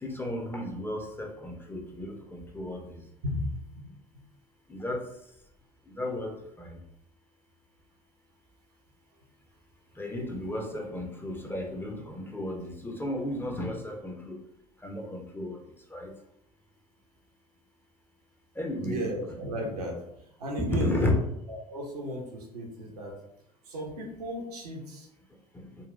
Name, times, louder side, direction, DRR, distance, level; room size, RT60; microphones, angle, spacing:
voice 1, 0.0-3.0 4.7-5.0 5.9-6.7 10.0-14.4 14.8-15.6 15.9-16.1 18.6-19.1 20.6-21.2, left 1 dB, 10° left, 1 dB, 0.5 m, -33 dB
voice 2, 18.8-19.9 20.4-21.2 21.5-23.1 23.7-25.1, right 1 dB, 75° right, -1 dB, 0.8 m, -35 dB
3.8 x 2.2 x 2.5 m, 0.80 s
figure-of-eight pair, 65°, 20 cm